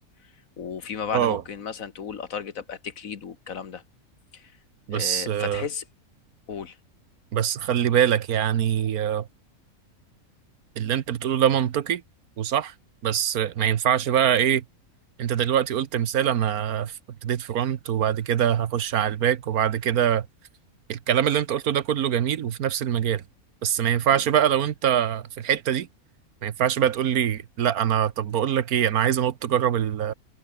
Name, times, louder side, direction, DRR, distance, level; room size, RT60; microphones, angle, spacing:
voice 1, 0.6-3.8 4.3-4.5 4.9-5.8 6.5-6.8 24.1-24.2, left 7 dB, 65° left, 1.8 m, -34 dB
voice 2, 4.9-5.6 7.3-9.3 10.8-12.0 12.4-12.7 13.0-14.6 15.2-16.9 17.2-20.3 20.9-23.2 23.6-25.9 26.4-30.1, right 9 dB, 80° right, 1.5 m, -23 dB
omnidirectional pair, 1.5 m